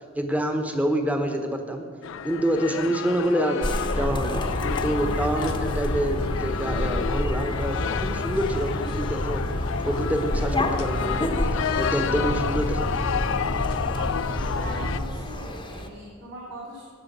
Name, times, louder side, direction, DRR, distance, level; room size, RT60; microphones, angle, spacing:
voice 1, 0.1-1.9 2.2-9.4 9.8-11.4 11.7-12.9, right 1 dB, 5° right, 4 dB, 1.0 m, -27 dB
sound 1, 2.0-15.0, left 8 dB, 60° left, 0.3 m, -31 dB
sound 2, 3.6-15.9, left 1 dB, 20° left, 0.9 m, -32 dB
sound 3, 3.9-15.1, equal, 85° left, 1.6 m, -30 dB
voice 2, 13.9-16.8, equal, 60° right, -7 dB, 3.1 m, -39 dB
17.5 x 6.5 x 5.4 m, 2.3 s
head